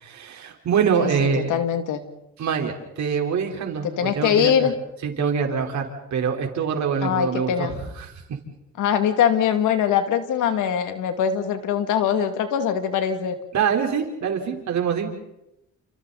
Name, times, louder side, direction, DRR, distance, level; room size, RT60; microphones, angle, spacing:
voice 1, 0.0-1.5 2.4-4.7 5.0-8.1 13.5-15.1, right 6 dB, 65° right, 3 dB, 4.3 m, -25 dB
voice 2, 0.9-2.0 3.8-4.7 7.0-7.8 8.8-13.4, left 8 dB, 85° left, 7 dB, 2.6 m, -22 dB
30.0 x 29.0 x 4.2 m, 0.88 s
cardioid pair, 90°, 30 cm